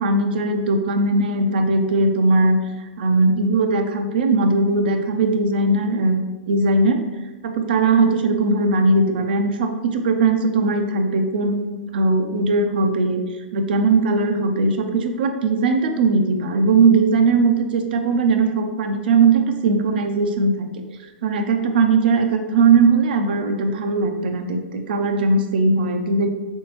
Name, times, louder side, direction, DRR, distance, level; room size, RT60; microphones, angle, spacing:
voice 1, 0.0-2.6 3.0-7.0 7.4-13.2 13.5-20.7 21.2-26.3, right 3 dB, 60° right, 5 dB, 0.6 m, -19 dB
4.4 x 3.6 x 3.0 m, 1.1 s
hypercardioid pair, 110°, 6 cm